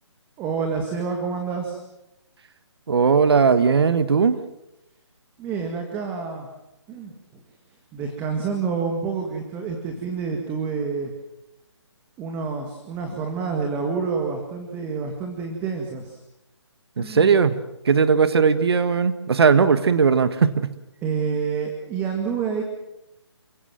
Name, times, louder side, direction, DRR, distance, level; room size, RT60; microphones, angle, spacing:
voice 1, 0.4-1.8 5.4-6.5 6.9-7.4 7.9-11.1 12.2-16.2 17.0-17.4 21.0-22.6, right 5 dB, 10° right, 3 dB, 2.0 m, -28 dB
voice 2, 2.9-4.4 17.0-17.5 17.8-20.7, right 5 dB, 60° right, 12 dB, 1.6 m, -18 dB
29.0 x 17.0 x 7.6 m, 0.92 s
hypercardioid pair, 165°, 15 cm